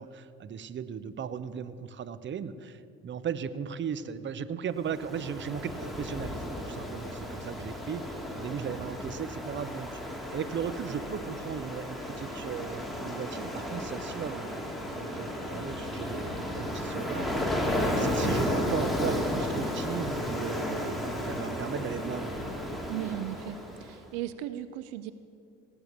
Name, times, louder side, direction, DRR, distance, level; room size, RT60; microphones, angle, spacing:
voice 1, 0.0-17.6 18.0-22.4, right 7 dB, 35° right, 14 dB, 0.7 m, -37 dB
Ocean, 4.8-23.9, left 1 dB, ahead, 2.3 m, -33 dB
voice 2, 22.9-25.1, right 12 dB, 75° right, 13 dB, 0.6 m, -36 dB
18.0 x 6.9 x 6.8 m, 2.3 s
hypercardioid pair, 60°, 33 cm